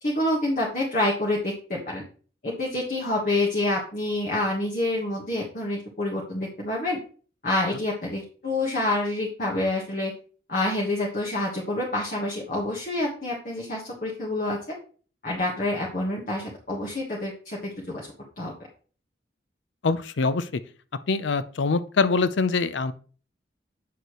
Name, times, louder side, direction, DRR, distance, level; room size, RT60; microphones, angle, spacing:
voice 1, 0.0-2.0 2.4-7.0 7.4-10.1 10.5-14.6 15.2-18.1 18.4-18.5, left 1 dB, 45° left, -3 dB, 1.4 m, -27 dB
voice 2, 19.8-20.5 21.1-22.9, left 4 dB, 90° left, 14 dB, 0.5 m, -24 dB
8.4 x 6.7 x 3.1 m, 0.42 s
head